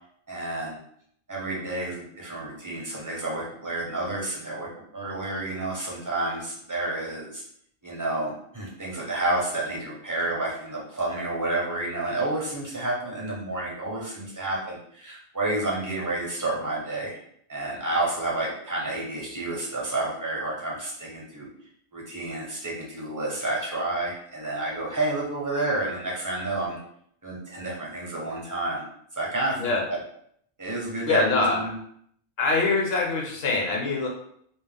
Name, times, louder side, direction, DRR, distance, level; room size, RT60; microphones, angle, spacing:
voice 1, 0.3-0.8 1.3-7.4 7.8-17.2 17.5-21.5 21.9-26.8 27.2-28.8 29.1-30.0 30.6-31.7, right 2 dB, 25° right, -4 dB, 0.4 m, -30 dB
voice 2, 31.0-31.6 32.4-34.1, left 3 dB, 60° left, -1 dB, 0.9 m, -24 dB
2.4 x 2.0 x 3.3 m, 0.68 s
omnidirectional pair, 1.2 m